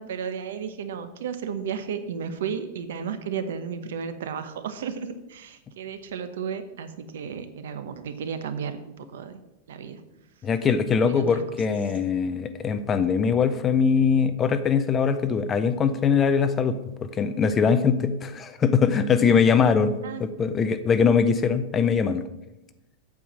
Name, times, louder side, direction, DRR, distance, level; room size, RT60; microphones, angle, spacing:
voice 1, 0.0-9.4 9.7-10.0 11.1-11.4 20.0-20.3, right 7 dB, 85° right, 10 dB, 1.0 m, -33 dB
voice 2, 10.4-22.2, left 6 dB, 15° left, 11 dB, 0.4 m, -22 dB
8.4 x 4.7 x 7.3 m, 0.96 s
supercardioid pair, 180°, 0 cm